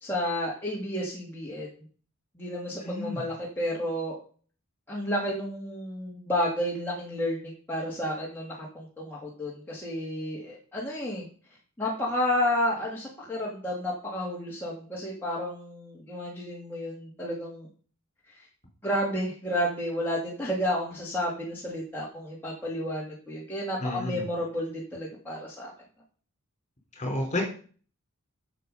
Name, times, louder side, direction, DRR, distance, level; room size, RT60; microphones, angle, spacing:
voice 1, 0.0-1.7 2.4-4.2 4.9-11.3 11.8-17.7 18.3-18.5 18.8-25.7, left 1 dB, 10° left, -5 dB, 2.1 m, -31 dB
voice 2, 2.8-3.2 23.8-24.2 26.9-27.5, left 1 dB, 35° left, 2 dB, 3.6 m, -30 dB
8.6 x 6.9 x 5.4 m, 0.42 s
head